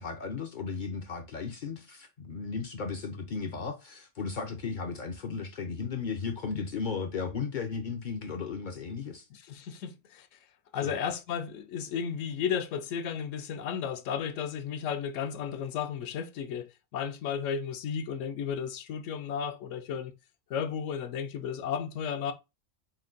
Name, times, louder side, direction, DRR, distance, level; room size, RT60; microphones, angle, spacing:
voice 1, 0.0-9.3 10.8-10.9, left 5 dB, 55° left, 0.5 m, -35 dB
voice 2, 9.3-10.4 10.7-20.1 20.5-22.3, left 7 dB, 75° left, 0.9 m, -34 dB
4.2 x 2.2 x 3.8 m
omnidirectional pair, 1.3 m